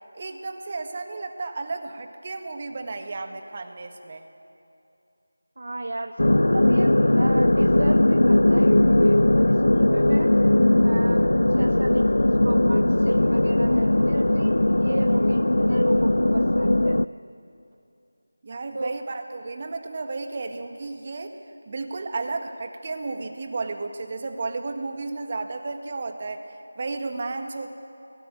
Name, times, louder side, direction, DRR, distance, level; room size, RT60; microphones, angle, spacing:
voice 1, 0.1-4.3 18.4-21.4 21.7-27.7, right 3 dB, 30° right, 5 dB, 1.8 m, -33 dB
voice 2, 5.6-10.3 10.8-12.1 12.4-17.0 18.7-19.0, right 2 dB, 50° right, 6 dB, 1.0 m, -35 dB
sound 1, 6.2-17.1, left 1 dB, 80° left, 0.6 m, -19 dB
29.0 x 18.5 x 9.5 m, 2.7 s
figure-of-eight pair, 170°, 0 cm